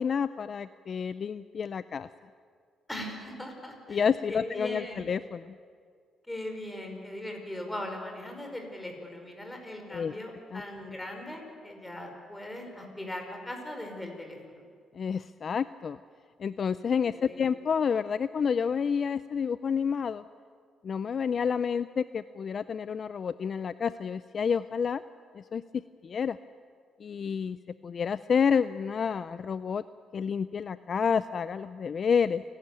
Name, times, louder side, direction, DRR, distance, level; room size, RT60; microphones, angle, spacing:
voice 1, 0.0-2.1 3.9-5.5 9.9-10.1 10.5-10.6 15.0-16.0 16.4-20.2 20.8-25.0 25.3-25.6 26.0-26.4 27.0-27.6 27.8-29.8 30.1-32.4, left 6 dB, 50° left, 14 dB, 0.5 m, -29 dB
voice 2, 2.9-5.1 6.3-14.6 17.0-17.5, left 1 dB, 10° left, 3 dB, 5.1 m, -39 dB
28.5 x 12.5 x 9.1 m, 2.1 s
cardioid pair, 90°, 0 cm